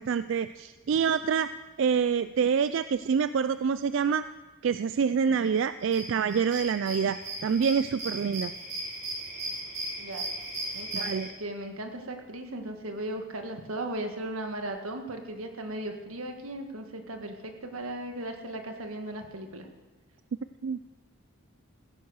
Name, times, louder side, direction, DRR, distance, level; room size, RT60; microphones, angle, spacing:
voice 1, 0.0-1.5 1.8-4.3 4.6-8.5 10.9-11.3 20.6-20.8, right 6 dB, 60° right, 13 dB, 0.3 m, -26 dB
sound 1, 5.8-11.3, right 1 dB, 35° right, 4.1 m, -37 dB
voice 2, 10.0-10.3 10.7-19.7, right 1 dB, 90° right, 5 dB, 1.7 m, -37 dB
16.0 x 10.5 x 6.4 m, 1.3 s
head